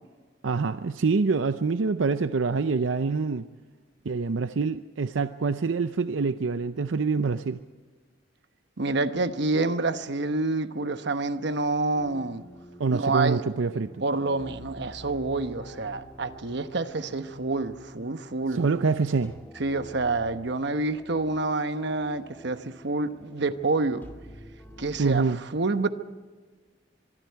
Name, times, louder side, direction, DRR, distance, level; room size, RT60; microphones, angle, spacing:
voice 1, 0.4-3.5 4.0-7.6 12.8-14.0 18.5-19.3 25.0-25.4, right 4 dB, 85° right, 11 dB, 0.6 m, -26 dB
voice 2, 8.8-12.4 12.9-13.4 14.0-18.6 19.6-24.0 24.8-25.3 25.5-25.9, right 3 dB, 65° right, 10 dB, 1.0 m, -27 dB
sound 1, 11.9-25.2, equal, 10° left, 2.2 m, -48 dB
25.0 x 22.5 x 4.6 m, 1.4 s
head